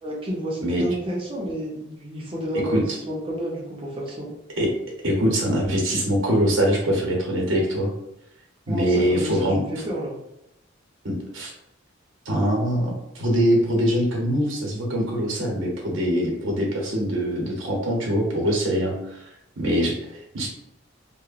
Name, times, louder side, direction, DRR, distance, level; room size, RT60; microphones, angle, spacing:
voice 1, 0.0-4.3 8.7-10.2, right 1 dB, 25° right, -3 dB, 0.6 m, -30 dB
voice 2, 2.6-3.0 4.6-4.7 5.0-7.9 8.7-9.6 11.0-11.5 12.2-19.2 19.6-20.0 20.3-20.5, equal, 75° right, -2 dB, 0.8 m, -23 dB
2.9 x 2.1 x 2.4 m, 0.83 s
head